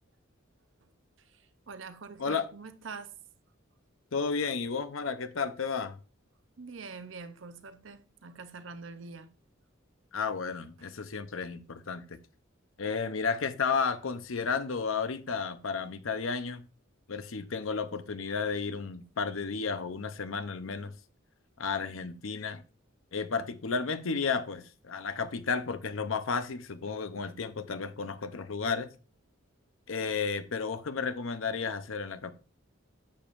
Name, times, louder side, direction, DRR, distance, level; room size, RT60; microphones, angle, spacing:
voice 1, 1.2-3.1 6.6-9.3, right 4 dB, 65° right, 0.7 m, -45 dB
voice 2, 4.1-6.0 10.1-12.2 12.8-16.6 17.1-20.9 21.6-22.6 23.1-28.9 29.9-32.3, left 5 dB, 80° left, 0.7 m, -32 dB
10.0 x 7.1 x 2.6 m
head